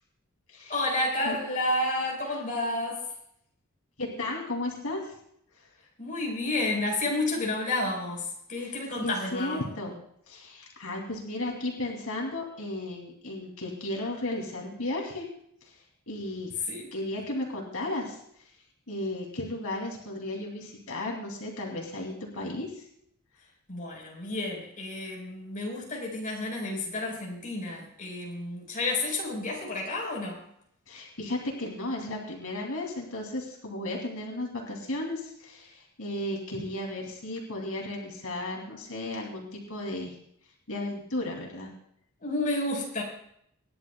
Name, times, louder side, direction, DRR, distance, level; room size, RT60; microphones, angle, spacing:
voice 1, 0.7-3.1 6.0-9.6 16.7-16.9 23.7-30.4 42.2-43.0, left 2 dB, 40° left, -1 dB, 4.7 m, -30 dB
voice 2, 4.0-5.2 5.5-5.7 8.6-9.9 10.3-15.3 15.6-15.8 16.1-16.5 16.9-18.5 18.9-22.8 30.9-40.2 40.7-41.7, left 1 dB, 85° left, 0 dB, 2.8 m, -34 dB
26.5 x 11.0 x 2.3 m, 0.71 s
head